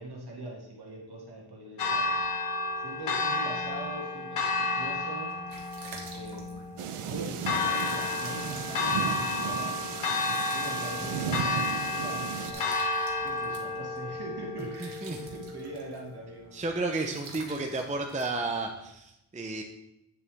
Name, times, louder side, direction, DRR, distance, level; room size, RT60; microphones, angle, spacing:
voice 1, 0.0-2.2 2.8-5.4 6.1-6.7 7.1-16.5, right 1 dB, 50° right, -2 dB, 2.1 m, -42 dB
Church bell, 1.8-15.8, left 3 dB, 90° left, 1.3 m, -31 dB
sound 1, 5.2-19.0, right 4 dB, 65° right, 1.6 m, -50 dB
sound 2, 6.8-12.5, right 7 dB, 80° right, 0.8 m, -35 dB
voice 2, 14.8-15.2 16.5-19.6, right 3 dB, 15° right, 3 dB, 0.6 m, -32 dB
9.4 x 6.9 x 3.5 m, 0.86 s
wide cardioid pair, 140°, 50 cm